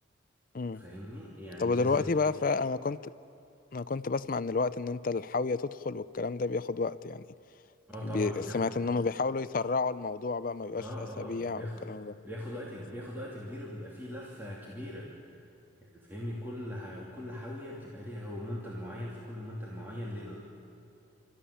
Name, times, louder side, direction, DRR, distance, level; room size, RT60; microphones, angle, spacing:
voice 1, 0.7-2.1 7.9-8.7 10.7-11.8 12.2-15.1 15.8-20.4, left 1 dB, 10° right, -5 dB, 2.7 m, -40 dB
voice 2, 1.6-3.0 3.7-7.2 8.0-12.1, left 4 dB, 45° left, 15 dB, 0.5 m, -31 dB
28.5 x 14.0 x 10.0 m, 2.7 s
head